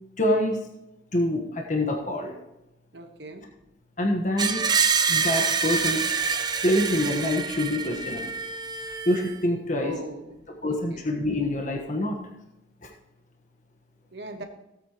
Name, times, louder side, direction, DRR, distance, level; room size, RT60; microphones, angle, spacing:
voice 1, 0.2-0.6 1.1-2.3 4.0-4.6 5.1-8.3 9.1-10.0 10.6-12.2 12.8-12.9, left 1 dB, 40° left, 2 dB, 1.3 m, -26 dB
voice 2, 2.9-3.4 9.7-10.4 10.6-11.0 14.1-14.4, right 1 dB, 60° right, 5 dB, 1.2 m, -40 dB
Screech, 4.4-9.3, right 5 dB, 20° right, 0.6 m, -26 dB
16.5 x 8.7 x 3.0 m, 0.93 s
head